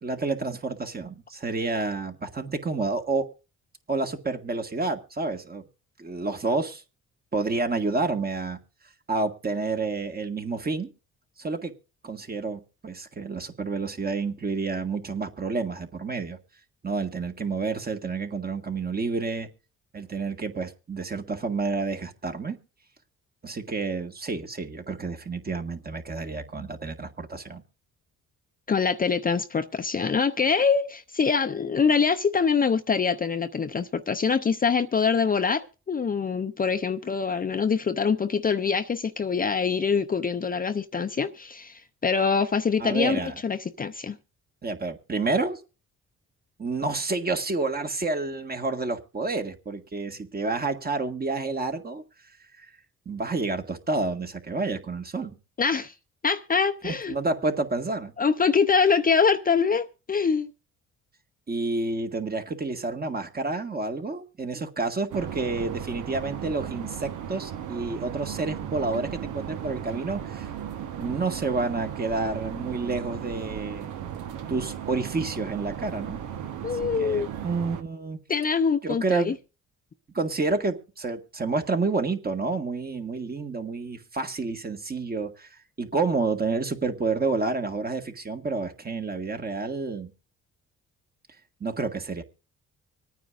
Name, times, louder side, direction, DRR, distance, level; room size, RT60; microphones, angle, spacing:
voice 1, 0.0-3.3 3.9-5.6 6.0-6.8 7.3-8.6 9.1-10.9 11.4-11.7 12.0-16.4 16.8-19.5 19.9-22.6 23.4-27.6 42.8-43.3 44.6-45.6 46.6-52.0 53.1-55.3 56.8-58.1 61.5-70.5 71.0-73.9 74.5-76.2 76.7-78.2 78.8-79.4 80.1-85.5 85.8-90.1 91.6-92.2, right 3 dB, 30° right, 1.8 m, -29 dB
voice 2, 28.7-44.2 55.6-55.9 56.2-57.1 58.2-60.5 76.6-77.3 78.3-79.3, left 5 dB, 30° left, 0.7 m, -24 dB
sound 1, 65.1-77.8, right 9 dB, 80° right, 1.2 m, -36 dB
25.5 x 9.3 x 2.5 m
cardioid pair, 90°, 30 cm